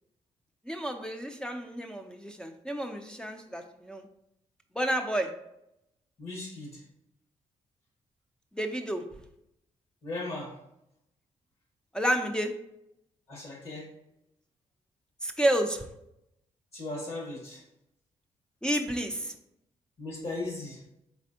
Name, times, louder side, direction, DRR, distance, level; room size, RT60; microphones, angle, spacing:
voice 1, 0.7-4.0 4.8-5.3 8.5-9.0 11.9-12.5 15.2-15.9 18.6-19.3, right 1 dB, 5° left, 3 dB, 0.4 m, -30 dB
voice 2, 6.2-6.8 10.0-10.5 13.3-13.9 16.7-17.6 20.0-20.8, left 2 dB, 55° left, -2 dB, 1.5 m, -37 dB
4.2 x 3.3 x 2.8 m, 0.81 s
cardioid pair, 65°, 13 cm